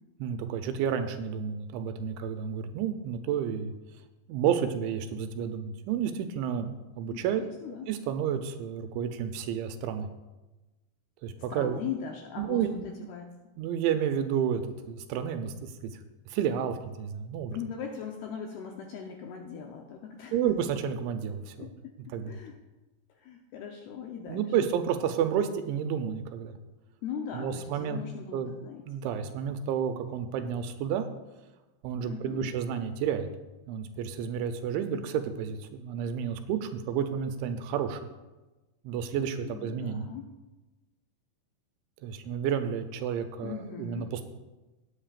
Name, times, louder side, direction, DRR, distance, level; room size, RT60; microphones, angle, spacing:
voice 1, 0.2-3.7 4.3-7.4 7.9-10.1 11.2-11.8 12.4-12.9 13.6-16.0 16.3-17.6 20.3-21.7 22.1-22.4 24.3-26.6 27.3-28.0 28.3-28.5 28.9-31.1 31.8-33.3 33.7-38.0 38.8-40.0 42.0-44.2, right 8 dB, 85° right, 7 dB, 2.9 m, -31 dB
voice 2, 7.1-7.9 11.5-13.3 17.5-20.4 21.6-21.7 22.1-22.5 23.1-24.6 27.0-28.8 32.0-32.5 39.5-40.3 43.4-44.1, left 7 dB, 80° left, 1 dB, 2.4 m, -39 dB
19.0 x 8.2 x 2.5 m, 1.1 s
omnidirectional pair, 5.4 m